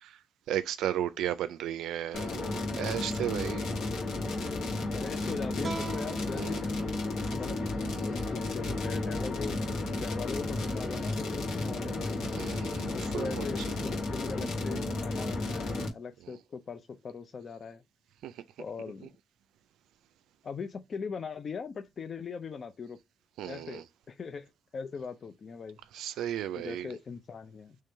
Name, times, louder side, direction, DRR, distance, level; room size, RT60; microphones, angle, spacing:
voice 1, 0.5-3.7 6.4-6.6 12.3-13.5 18.2-18.3 23.4-23.8 25.9-26.9, right 11 dB, 85° right, 0.4 m, -34 dB
sound 1, 2.1-15.9, left 2 dB, 75° left, 1.8 m, -33 dB
voice 2, 4.9-6.9 7.2-12.3 12.9-17.8 18.6-19.1 20.4-23.0 23.5-23.8 24.1-25.8 26.6-27.8, left 5 dB, 45° left, 0.5 m, -40 dB
sound 2, 5.6-8.8, right 4 dB, 35° right, 0.8 m, -44 dB
3.7 x 3.2 x 4.2 m
cardioid pair, 90°, 0 cm